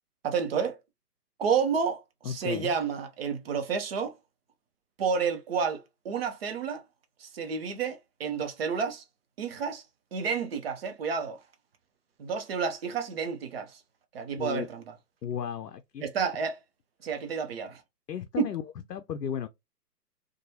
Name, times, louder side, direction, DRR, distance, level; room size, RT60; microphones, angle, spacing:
voice 1, 0.2-0.8 1.4-4.1 5.0-6.8 7.2-9.0 9.4-9.8 10.1-11.4 12.2-13.8 14.1-14.8 16.0-16.6 17.0-17.8 18.4-18.5, right 6 dB, 40° right, 0.7 m, -30 dB
voice 2, 2.2-2.7 14.4-14.7 15.2-16.3 18.1-18.6 18.9-19.5, left 8 dB, 85° left, 0.5 m, -34 dB
3.0 x 2.3 x 2.7 m
figure-of-eight pair, 135°, 49 cm